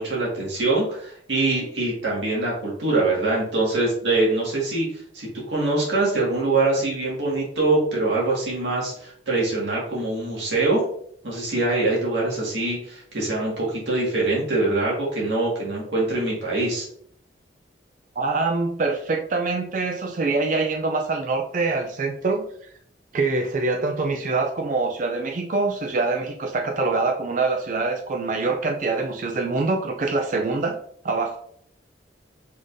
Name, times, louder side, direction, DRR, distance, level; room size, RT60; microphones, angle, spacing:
voice 1, 0.0-10.8 11.2-16.9, right 2 dB, 75° right, -4 dB, 1.8 m, -24 dB
voice 2, 18.2-22.5 23.1-30.8 31.0-31.4, right 3 dB, 45° right, 4 dB, 0.4 m, -24 dB
5.0 x 3.7 x 2.6 m, 0.64 s
head